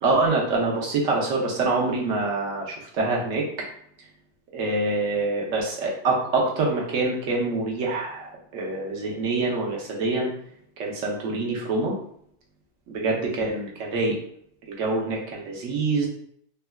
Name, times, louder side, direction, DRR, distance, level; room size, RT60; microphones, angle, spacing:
voice 1, 0.0-3.5 4.5-10.3 10.8-11.9 12.9-14.2 14.7-16.1, right 3 dB, 75° right, -1 dB, 1.1 m, -25 dB
3.5 x 2.2 x 2.2 m, 0.66 s
omnidirectional pair, 1.4 m